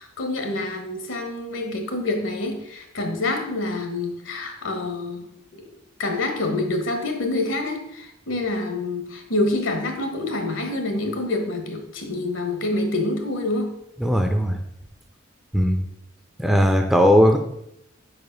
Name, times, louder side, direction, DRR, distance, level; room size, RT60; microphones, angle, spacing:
voice 1, 0.0-5.3 5.5-5.6 6.0-13.8, left 2 dB, 70° left, 4 dB, 1.2 m, -27 dB
voice 2, 14.0-14.6 15.5-15.8 16.4-17.4, equal, ahead, 4 dB, 0.4 m, -18 dB
5.1 x 4.9 x 5.2 m, 0.77 s
head